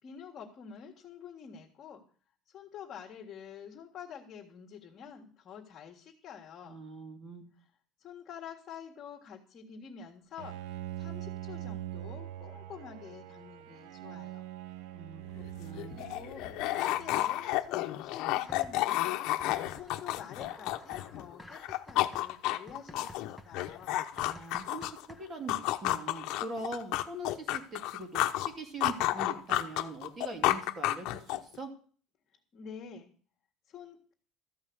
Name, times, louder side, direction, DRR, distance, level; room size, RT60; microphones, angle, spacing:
voice 1, 0.0-2.0 2.5-6.8 8.0-14.5 15.9-19.2 19.4-24.0 32.5-33.1 33.7-34.1, left 7 dB, 35° left, -1 dB, 1.9 m, -48 dB
voice 2, 6.6-7.5 14.9-16.0 24.2-31.7, right 2 dB, 25° right, 5 dB, 2.6 m, -42 dB
Bowed string instrument, 10.4-17.5, right 13 dB, 90° right, 0.8 m, -43 dB
sound 1, 15.4-15.5 15.7-21.3 21.5-25.1 25.5-28.5 28.8-31.6, left 15 dB, 65° left, 0.9 m, -31 dB
sound 2, 18.5-19.1 19.4-25.9, left 1 dB, ahead, 1.1 m, -52 dB
14.5 x 5.6 x 9.6 m, 0.44 s
cardioid pair, 160°, 0 cm